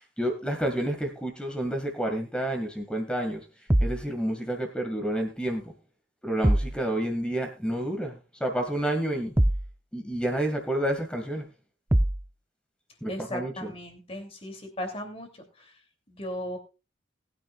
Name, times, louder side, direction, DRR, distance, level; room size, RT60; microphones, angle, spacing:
voice 1, 0.0-3.5 3.8-5.7 6.2-9.4 9.9-11.5 13.0-13.7, right 1 dB, 5° left, 3 dB, 1.9 m, -29 dB
sound 1, 3.7-4.1 6.4-6.8 9.4-9.7 11.9-12.3, right 1 dB, 10° right, 0.5 m, -22 dB
voice 2, 13.1-15.8 16.1-16.6, equal, 30° left, 5 dB, 2.9 m, -37 dB
19.5 x 9.4 x 2.4 m, 0.29 s
head